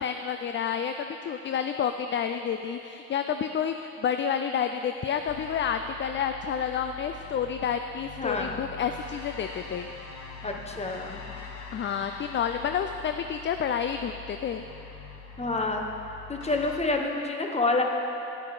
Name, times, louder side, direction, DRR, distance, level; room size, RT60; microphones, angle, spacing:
voice 1, 0.0-9.9 11.7-14.6, left 7 dB, 40° left, 7 dB, 0.4 m, -29 dB
sound 1, 5.3-16.8, left 5 dB, 65° left, 1.2 m, -44 dB
voice 2, 8.2-8.6 10.4-11.2 15.4-15.8 16.3-17.8, left 2 dB, 20° left, 2 dB, 1.1 m, -28 dB
10.5 x 8.7 x 4.9 m, 3.0 s
cardioid pair, 90°, 30 cm